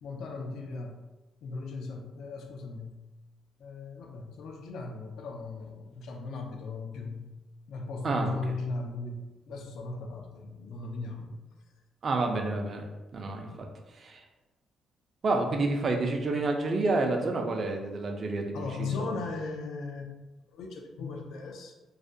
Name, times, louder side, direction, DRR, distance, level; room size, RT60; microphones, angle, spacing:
voice 1, 0.0-1.0 1.4-3.0 3.6-7.3 7.7-11.3 18.5-20.1 20.5-21.7, left 3 dB, 75° left, 3 dB, 0.4 m, -37 dB
voice 2, 8.0-8.3 12.0-12.8 13.1-13.5 14.0-14.2 15.2-19.1, right 3 dB, 45° right, 3 dB, 0.4 m, -29 dB
2.4 x 2.1 x 2.6 m, 1.1 s
cardioid pair, 90°, 0 cm